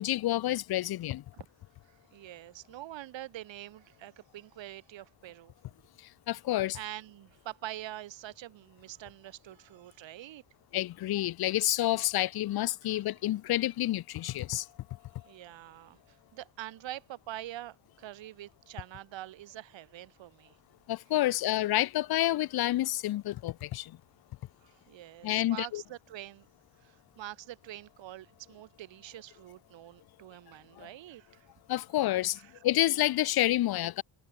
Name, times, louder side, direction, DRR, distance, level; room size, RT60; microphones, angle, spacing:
voice 1, 0.0-1.2 6.3-6.8 10.7-14.6 20.9-23.9 25.2-25.8 30.8-30.9 31.7-34.0, left 15 dB, 50° left, 0.8 m, -29 dB
voice 2, 1.8-5.5 6.7-10.4 12.9-13.0 14.6-14.7 15.2-20.6 24.6-26.5 26.8-31.5 32.0-32.1 32.4-32.6, right 14 dB, 70° right, 4.4 m, -45 dB
cardioid pair, 115°, 47 cm